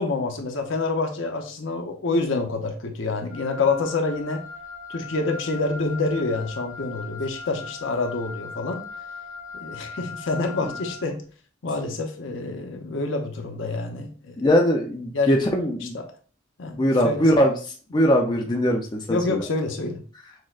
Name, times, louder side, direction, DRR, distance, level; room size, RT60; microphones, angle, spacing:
voice 1, 0.0-4.4 4.9-8.8 9.5-11.2 11.6-14.4 15.1-15.3 15.9-16.1 16.6-16.8 17.0-17.4 19.1-20.0, left 3 dB, 65° left, 4 dB, 0.7 m, -27 dB
Wind instrument woodwind instrument, 3.3-11.1, left 5 dB, 85° right, 1.0 m, -39 dB
voice 2, 14.4-16.0 16.7-19.4, equal, 20° left, 1 dB, 0.4 m, -21 dB
6.2 x 2.1 x 2.4 m, 0.41 s
head